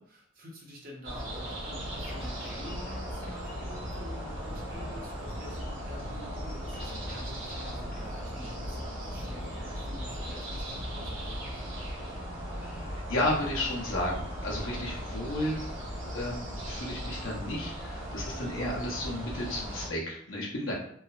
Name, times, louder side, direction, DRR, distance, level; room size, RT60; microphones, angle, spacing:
voice 1, 0.1-11.6 18.2-18.6, equal, 45° right, -2 dB, 0.6 m, -48 dB
sound 1, 1.0-19.9, equal, 70° right, 1.0 m, -38 dB
sound 2, 1.8-11.1, left 1 dB, 40° left, 0.3 m, -45 dB
voice 2, 12.5-15.6 16.1-20.7, left 1 dB, 70° left, -4 dB, 0.8 m, -33 dB
3.1 x 2.0 x 2.4 m, 0.64 s
head